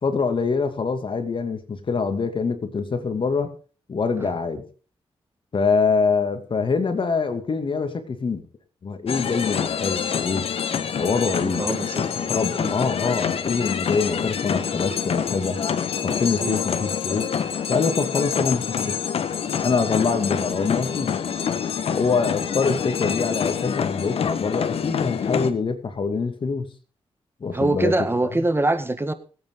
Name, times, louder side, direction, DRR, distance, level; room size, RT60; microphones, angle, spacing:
voice 1, 0.0-3.5 3.9-4.6 5.5-8.4 8.8-10.5 10.9-11.7 11.9-15.6 16.0-17.3 17.7-19.0 19.6-21.2 21.9-26.7 27.4-28.4, left 4 dB, 55° left, 8 dB, 2.5 m, -24 dB
sound 1, 9.1-25.5, left 7 dB, 70° left, 1.3 m, -26 dB
voice 2, 11.4-12.1 12.6-12.7 16.4-16.6 27.5-29.1, right 2 dB, 20° right, 10 dB, 1.7 m, -24 dB
22.0 x 8.8 x 3.9 m, 0.38 s
cardioid pair, 60°, 10 cm